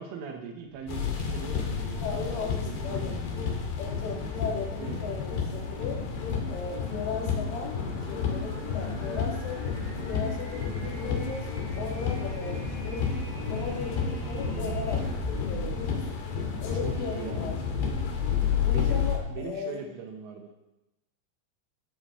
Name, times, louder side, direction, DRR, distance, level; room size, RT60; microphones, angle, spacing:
voice 1, 0.0-3.2 4.8-5.0 16.8-17.5 18.6-20.5, right 6 dB, 85° right, 2 dB, 3.7 m, -40 dB
sound 1, 0.7-16.9, right 2 dB, 40° right, 2.3 m, -42 dB
sound 2, 0.9-19.2, left 6 dB, 65° left, 3.8 m, -31 dB
voice 2, 2.0-3.1 3.8-6.0 6.5-9.7 10.1-13.1 13.5-16.1 16.6-17.6 18.6-19.9, left 5 dB, 90° left, -1 dB, 4.6 m, -37 dB
sound 3, 8.5-13.7, right 4 dB, 65° right, 3.0 m, -48 dB
15.5 x 13.0 x 3.2 m, 0.94 s
omnidirectional pair, 5.5 m